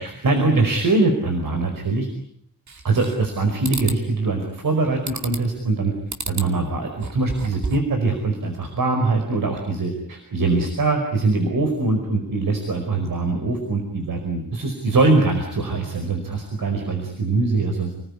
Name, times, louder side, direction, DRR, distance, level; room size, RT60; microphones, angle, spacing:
voice 1, 0.0-2.1 2.8-5.9 6.3-18.1, right 3 dB, 70° right, 5 dB, 5.0 m, -22 dB
sound 1, 2.7-3.3 3.6-4.0 5.1-5.6 6.1-6.5 6.9-7.9, right 4 dB, 55° right, 2.5 m, -31 dB
29.5 x 20.0 x 9.8 m, 0.70 s
wide cardioid pair, 140°, 35 cm